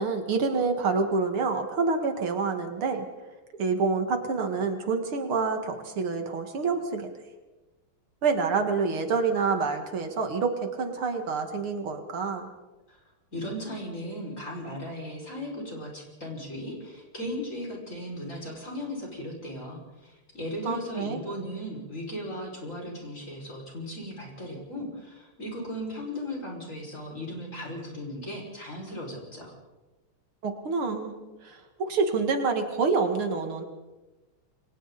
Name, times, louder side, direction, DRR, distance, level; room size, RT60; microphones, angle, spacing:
voice 1, 0.0-3.1 3.6-7.1 8.2-12.5 20.6-21.2 30.4-31.2 31.4-33.6, right 4 dB, 75° right, 5 dB, 2.7 m, -27 dB
voice 2, 13.3-29.5, equal, 35° left, -1 dB, 6.3 m, -37 dB
29.5 x 23.5 x 4.2 m, 1.1 s
omnidirectional pair, 2.4 m